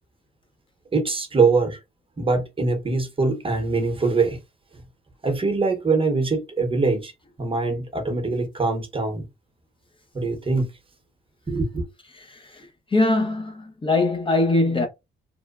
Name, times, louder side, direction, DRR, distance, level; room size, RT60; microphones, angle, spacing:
voice 1, 0.9-1.8 2.2-4.4 5.2-7.1 7.4-9.2 10.1-10.7 11.5-11.9, right 3 dB, 25° right, 0.9 m, -23 dB
voice 2, 12.1-12.7 12.9-14.9, left 2 dB, 25° left, 0.6 m, -22 dB
3.0 x 2.1 x 2.3 m
cardioid pair, 90°, 20 cm